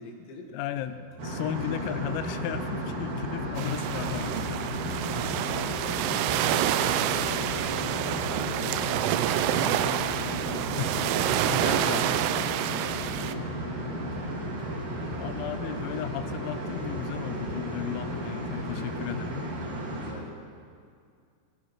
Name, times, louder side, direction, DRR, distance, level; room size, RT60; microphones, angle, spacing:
voice 1, 0.0-0.5 3.9-4.4 4.8-6.3 6.8-9.6 11.6-13.2 19.9-20.4, left 2 dB, 70° left, 0 dB, 3.6 m, -45 dB
voice 2, 0.5-4.8 5.9-6.2 9.5-11.1 11.4-12.2 13.7-14.0 14.8-14.9 15.2-19.3, left 11 dB, 85° left, 10 dB, 3.2 m, -36 dB
sound 1, 0.8-18.7, right 1 dB, 20° right, 3.2 m, -50 dB
sound 2, 1.2-20.1, equal, 55° right, 2.2 m, -34 dB
sound 3, 3.6-13.3, right 12 dB, 90° right, 2.7 m, -28 dB
19.0 x 15.5 x 3.0 m, 2.2 s
omnidirectional pair, 6.0 m